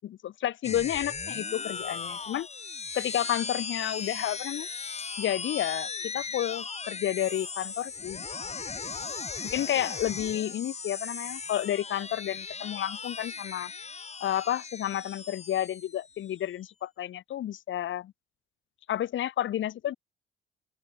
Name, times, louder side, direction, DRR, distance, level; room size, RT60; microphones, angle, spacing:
voice 1, 0.0-2.5 2.9-4.7 5.2-8.3 9.4-13.7 14.2-18.1 18.9-19.9, left 12 dB, 75° left, 6.3 m, -31 dB
sound 1, 0.6-16.4, left 5 dB, 35° left, 5.1 m, -37 dB
open air
cardioid pair, 90°, 20 cm